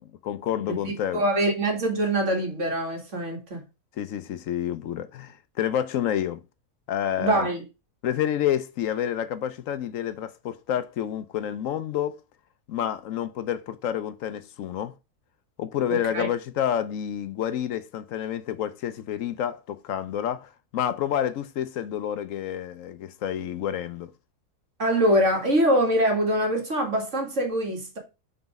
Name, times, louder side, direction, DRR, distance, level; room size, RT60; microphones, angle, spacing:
voice 1, 0.2-1.2 4.0-6.4 6.9-7.5 8.0-12.2 12.7-14.9 15.6-24.1, left 10 dB, 65° left, 0.9 m, -29 dB
voice 2, 0.8-3.6 7.2-7.6 15.9-16.3 24.8-28.0, right 1 dB, 50° right, 2.0 m, -24 dB
5.8 x 4.0 x 5.1 m
omnidirectional pair, 1.6 m